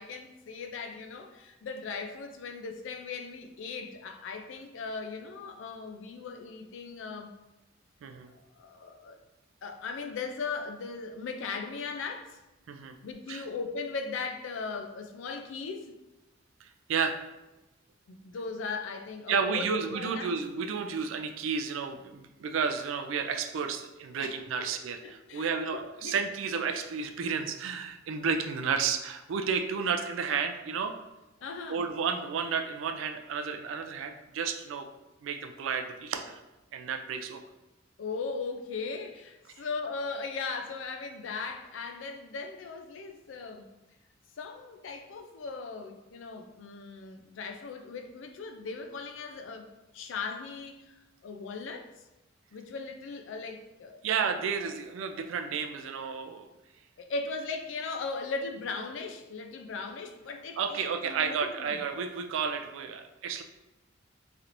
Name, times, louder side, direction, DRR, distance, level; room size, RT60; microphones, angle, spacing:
voice 1, 0.0-7.3 8.3-9.2 9.6-12.4 13.0-15.9 18.1-20.3 24.2-24.8 25.0-26.2 31.4-31.8 38.0-43.7 44.4-49.7 49.9-50.9 51.2-51.9 52.5-54.0 57.0-61.8, left 4 dB, 75° left, 5 dB, 0.4 m, -38 dB
voice 2, 16.6-17.2 19.3-30.9 31.7-34.9 35.2-36.4 36.7-37.4 54.0-56.5 60.6-63.4, right 6 dB, 85° right, 7 dB, 0.3 m, -32 dB
3.2 x 2.8 x 2.5 m, 1.0 s
head